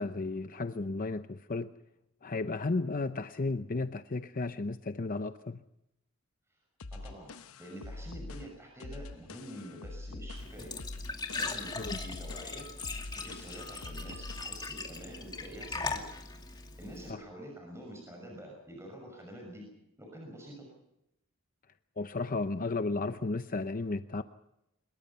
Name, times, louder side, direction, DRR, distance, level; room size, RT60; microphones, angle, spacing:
voice 1, 0.0-1.7 2.2-5.6 11.8-12.0 17.1-17.2 22.0-24.2, left 3 dB, 40° left, 10 dB, 0.7 m, -34 dB
sound 1, 6.8-14.6, left 2 dB, 90° left, 0.9 m, -44 dB
voice 2, 6.9-7.3 7.6-10.7 11.4-12.7 13.2-16.0 16.5-19.6 20.0-20.7, right 1 dB, 15° right, 1 dB, 6.1 m, -47 dB
Glass / Trickle dribble / Fill (with liquid), 10.4-17.1, left 3 dB, 20° left, 2.4 m, -40 dB
24.5 x 22.0 x 5.7 m, 0.84 s
head